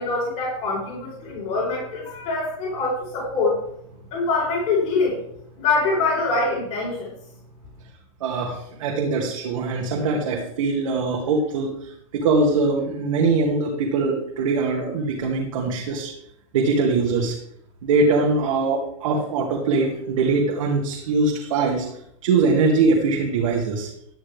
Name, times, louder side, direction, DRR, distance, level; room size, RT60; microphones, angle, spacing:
voice 1, 0.0-3.6 4.1-5.2 5.6-7.1, left 3 dB, 40° left, -4 dB, 4.4 m, -24 dB
voice 2, 8.2-16.1 16.5-17.3 17.8-21.9 22.2-23.9, right 3 dB, 75° right, -1 dB, 2.3 m, -22 dB
12.5 x 10.0 x 3.5 m, 0.73 s
supercardioid pair, 145°, 17 cm